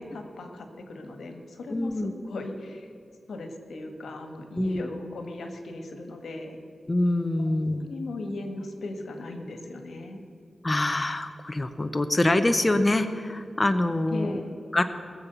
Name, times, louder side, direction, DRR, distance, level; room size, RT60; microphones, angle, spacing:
voice 1, 0.0-2.9 3.3-6.6 7.4-10.2 14.1-14.6, left 2 dB, 90° left, 5 dB, 1.6 m, -38 dB
voice 2, 1.7-2.1 4.6-4.8 6.9-7.9 10.6-14.4 14.7-14.8, left 2 dB, 20° left, 8 dB, 0.6 m, -25 dB
19.5 x 7.4 x 6.9 m, 2.5 s
wide cardioid pair, 140°, 0 cm